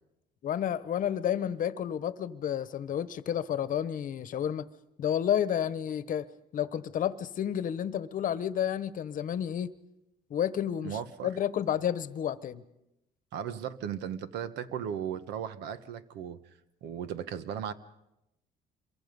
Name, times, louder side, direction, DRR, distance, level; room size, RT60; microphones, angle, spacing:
voice 1, 0.4-4.7 5.0-6.3 6.5-9.7 10.3-12.6, left 9 dB, 50° left, 1.1 m, -31 dB
voice 2, 10.8-11.3 13.3-16.4 16.8-17.7, right 9 dB, 85° right, 1.3 m, -36 dB
27.0 x 23.0 x 5.4 m
cardioid pair, 110°, 17 cm